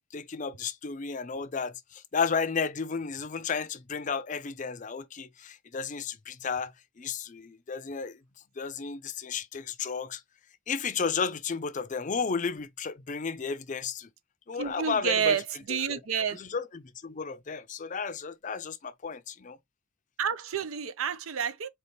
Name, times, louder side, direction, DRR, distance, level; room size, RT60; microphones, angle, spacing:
voice 1, 0.0-8.2 8.6-10.2 10.7-14.1 14.5-15.4 15.9-16.0 16.3-19.6, left 5 dB, 35° left, 0.5 m, -33 dB
voice 2, 14.6-15.4 15.7-16.4 20.2-21.7, right 7 dB, 80° right, 0.6 m, -29 dB
4.4 x 3.0 x 3.1 m
head